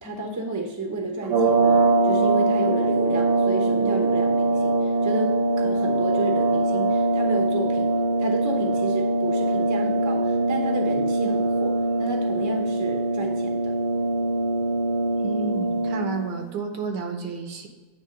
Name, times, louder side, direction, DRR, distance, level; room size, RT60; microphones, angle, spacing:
voice 1, 0.0-7.9 8.2-13.8, right 2 dB, 20° right, 2 dB, 0.5 m, -31 dB
sound 1, 1.2-16.4, right 2 dB, 55° right, 1.0 m, -22 dB
voice 2, 15.2-17.7, right 5 dB, 85° right, 4 dB, 1.6 m, -31 dB
8.8 x 3.2 x 5.0 m, 1.2 s
omnidirectional pair, 1.8 m